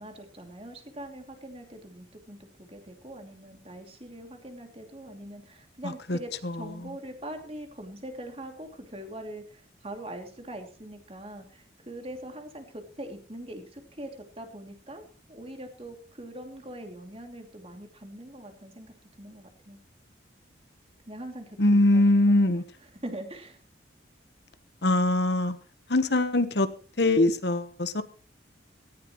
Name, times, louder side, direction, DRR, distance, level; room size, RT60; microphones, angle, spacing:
voice 1, 0.0-14.1 14.4-19.8 21.1-22.4 23.0-23.6, right 1 dB, 30° right, 4 dB, 2.8 m, -42 dB
voice 2, 5.8-6.9 21.6-22.6 24.8-25.6 25.9-26.7 27.0-28.0, left 2 dB, 60° left, 11 dB, 1.2 m, -23 dB
18.0 x 15.0 x 3.1 m, 0.39 s
head